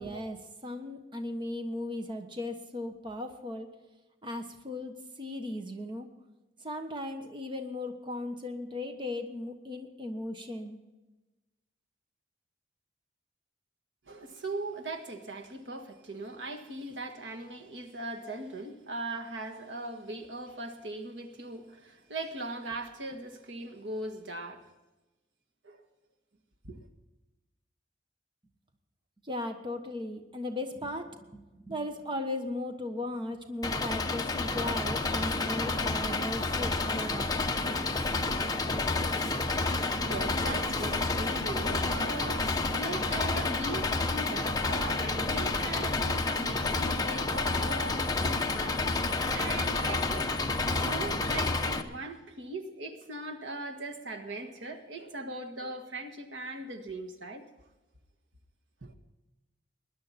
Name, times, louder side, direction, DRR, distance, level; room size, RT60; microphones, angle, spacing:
voice 1, 0.0-3.7 4.2-6.1 6.6-10.8 29.2-37.6, left 1 dB, 25° right, 1.2 m, -37 dB
voice 2, 14.1-24.6 25.6-25.8 26.6-26.8 40.0-57.4 58.8-58.9, right 2 dB, 85° right, 1.7 m, -39 dB
Engine, 33.6-51.8, left 3 dB, 20° left, 0.9 m, -30 dB
20.0 x 11.0 x 4.3 m
head